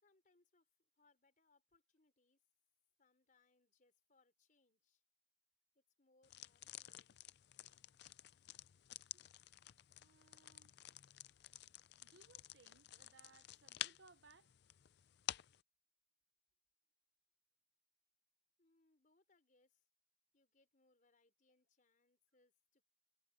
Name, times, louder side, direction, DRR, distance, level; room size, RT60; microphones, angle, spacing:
voice 1, 0.0-2.4 3.0-5.0 5.7-7.3 18.6-19.9 20.3-22.8, left 3 dB, 45° left, 4.4 m, -77 dB
sound 1, 6.2-15.6, left 13 dB, 60° left, 0.4 m, -52 dB
voice 2, 10.0-10.8 12.0-14.5, right 4 dB, 70° right, 0.8 m, -67 dB
head